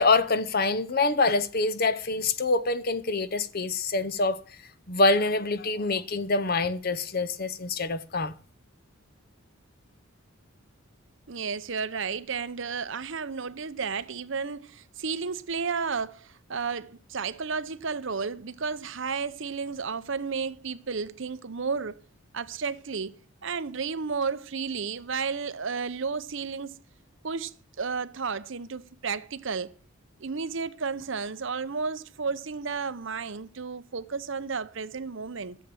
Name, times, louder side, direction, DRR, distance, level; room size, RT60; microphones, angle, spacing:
voice 1, 0.0-4.6 4.9-8.3, left 3 dB, 45° left, 0.8 m, -25 dB
voice 2, 11.3-22.0 22.3-26.8 27.2-27.5 27.8-29.7 30.2-35.6, right 5 dB, 55° right, 0.7 m, -32 dB
13.5 x 7.6 x 8.6 m
head